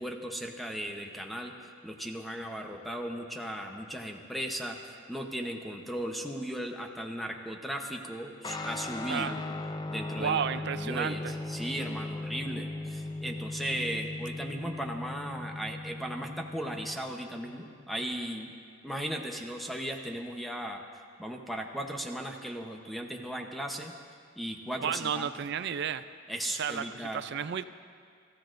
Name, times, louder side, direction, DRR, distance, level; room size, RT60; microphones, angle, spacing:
voice 1, 0.0-1.5 1.8-9.4 9.9-18.5 18.8-20.8 21.2-23.9 24.4-25.3 26.3-27.3, equal, ahead, 2 dB, 0.8 m, -37 dB
Guitar, 8.4-18.1, left 2 dB, 20° left, 0.5 m, -38 dB
voice 2, 10.2-11.3 24.8-26.0 26.5-27.6, right 7 dB, 55° right, 13 dB, 0.4 m, -32 dB
24.5 x 14.5 x 2.6 m, 2.2 s
head